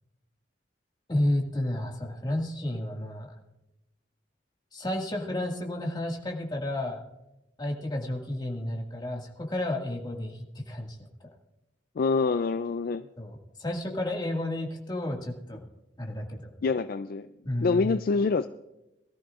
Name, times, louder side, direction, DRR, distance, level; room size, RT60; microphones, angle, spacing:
voice 1, 1.1-3.4 4.7-7.0 7.6-11.0 13.2-15.6 16.0-16.5 17.5-17.9, left 1 dB, 25° left, 0 dB, 1.9 m, -31 dB
voice 2, 12.0-13.1 16.6-17.3 17.6-18.5, left 4 dB, 55° left, 11 dB, 0.4 m, -26 dB
23.0 x 13.5 x 2.5 m, 0.93 s
head